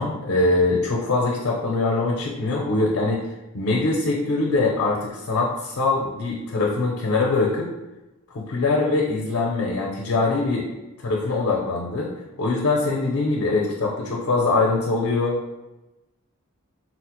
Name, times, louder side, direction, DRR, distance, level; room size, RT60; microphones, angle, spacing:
voice 1, 0.0-3.2 3.5-7.7 8.3-10.7 11.0-15.4, left 3 dB, 75° left, -1 dB, 0.5 m, -23 dB
4.1 x 2.0 x 2.9 m, 1.0 s
head